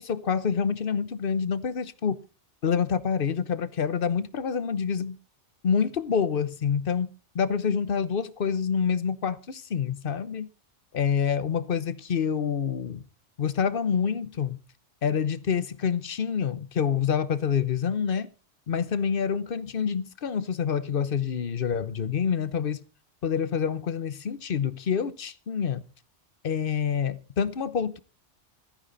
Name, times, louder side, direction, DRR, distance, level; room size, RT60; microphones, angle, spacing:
voice 1, 0.0-2.2 2.6-5.2 5.6-7.1 7.3-10.5 10.9-13.0 13.4-14.6 15.0-18.3 18.7-22.8 23.2-25.8 26.4-28.0, left 7 dB, 50° left, 1.1 m, -27 dB
16.5 x 13.5 x 4.0 m
omnidirectional pair, 1.2 m